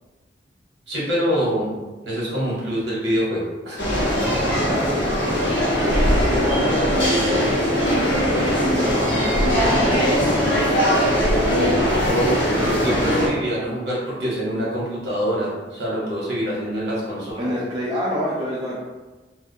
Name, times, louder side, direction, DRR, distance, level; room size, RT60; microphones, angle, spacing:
voice 1, 0.9-1.8 2.0-3.8 4.2-4.5 12.0-17.5, equal, 65° right, -6 dB, 1.0 m, -25 dB
sound 1, 3.8-13.3, equal, 70° left, 1.0 m, -20 dB
voice 2, 4.7-8.4 8.7-10.6 17.4-18.8, equal, 25° right, -5 dB, 0.3 m, -29 dB
2.3 x 2.3 x 2.6 m, 1.2 s
head